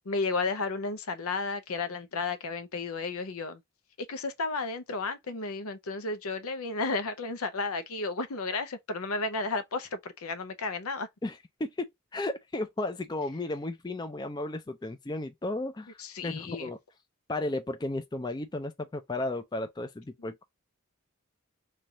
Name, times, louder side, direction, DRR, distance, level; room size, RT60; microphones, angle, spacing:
voice 1, 0.1-3.6 4.1-11.1 16.0-16.7, left 3 dB, 85° left, 0.7 m, -33 dB
voice 2, 11.2-16.8 17.3-20.4, left 2 dB, 20° left, 0.4 m, -34 dB
3.3 x 2.4 x 4.0 m
head